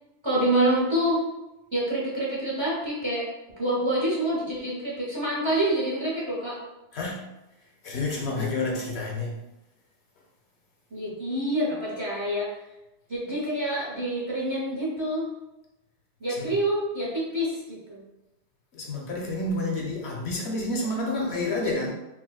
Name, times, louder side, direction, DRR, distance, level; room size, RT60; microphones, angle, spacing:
voice 1, 0.2-1.2 1.7-3.3 3.6-6.6 10.9-12.5 13.1-15.3 16.2-18.0, right 1 dB, 30° right, -7 dB, 0.8 m, -27 dB
voice 2, 6.9-7.2 7.8-9.4 16.3-16.5 18.7-21.9, left 2 dB, 65° left, -1 dB, 0.9 m, -29 dB
4.1 x 2.1 x 2.3 m, 0.95 s
omnidirectional pair, 1.2 m